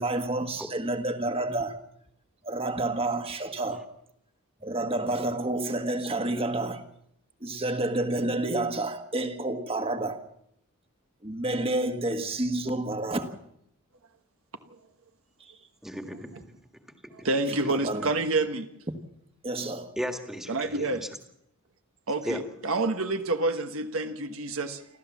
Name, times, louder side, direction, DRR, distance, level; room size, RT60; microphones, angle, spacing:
voice 1, 0.0-1.8 2.4-3.8 4.6-6.8 7.4-10.2 11.2-13.4 15.4-15.5 17.6-18.1 18.9-19.0 19.4-19.9, right 2 dB, 25° right, 1.6 m, -29 dB
voice 2, 15.8-16.5 17.0-17.3 20.0-21.1 22.2-22.4, equal, ahead, 1.8 m, -35 dB
voice 3, 17.2-18.7 20.5-21.0 22.1-24.9, right 2 dB, 65° right, 1.2 m, -28 dB
28.5 x 13.0 x 7.2 m
head